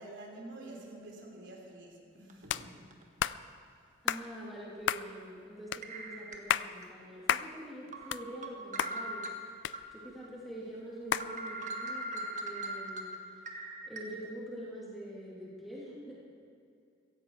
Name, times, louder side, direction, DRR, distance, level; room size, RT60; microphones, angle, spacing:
voice 1, 0.0-2.9, right 1 dB, 75° right, -2 dB, 3.4 m, -48 dB
sound 1, 2.3-2.4 2.9-3.0 4.2-4.4 5.8-6.9 7.3-7.4 7.9-9.8 10.2-10.3 10.7-10.8 11.1-14.0, right 1 dB, 40° right, 1.5 m, -40 dB
sound 2, 2.5-2.7 3.2-3.4 4.1-4.2 4.9-5.1 5.7-5.8 6.3-6.7 7.3-7.5 7.9-8.5 8.8-8.9 9.6-10.2 11.1-11.3, left 9 dB, 70° left, 0.4 m, -31 dB
voice 2, 4.0-9.3 9.9-13.1 13.9-16.2, equal, ahead, -7 dB, 2.8 m, -45 dB
16.0 x 16.0 x 4.7 m, 2.5 s
head